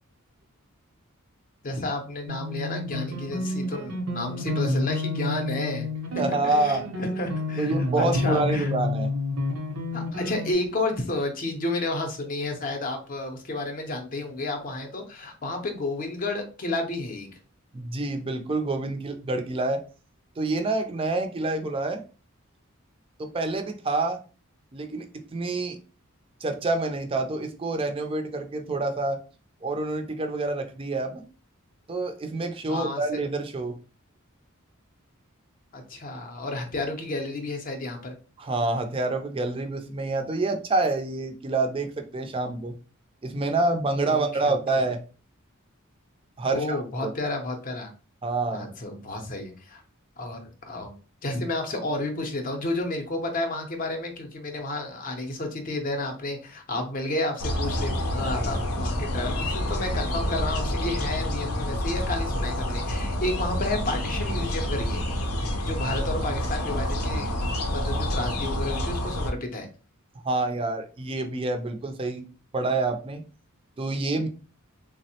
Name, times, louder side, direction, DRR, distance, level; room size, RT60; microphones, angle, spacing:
voice 1, 1.6-8.7 9.9-17.3 32.7-33.2 35.7-38.2 44.1-44.6 46.5-47.9 48.5-49.8 50.2-50.9 51.2-65.0 65.7-67.4 67.7-69.7, left 2 dB, 40° left, 4 dB, 0.5 m, -31 dB
sound 1, 2.3-10.5, left 2 dB, 80° right, 0.7 m, -29 dB
voice 2, 6.2-7.1 7.6-9.1 17.7-19.8 20.4-22.0 23.2-24.2 24.7-25.1 25.3-25.8 26.4-29.2 29.6-31.2 31.9-33.7 38.4-42.7 43.2-45.0 46.4-47.1 48.2-48.7 70.2-72.3 72.5-73.2 73.8-74.3, right 2 dB, 25° right, 5 dB, 0.4 m, -27 dB
sound 2, 57.4-69.3, left 1 dB, 90° left, 0.6 m, -28 dB
3.4 x 2.0 x 2.8 m, 0.36 s
head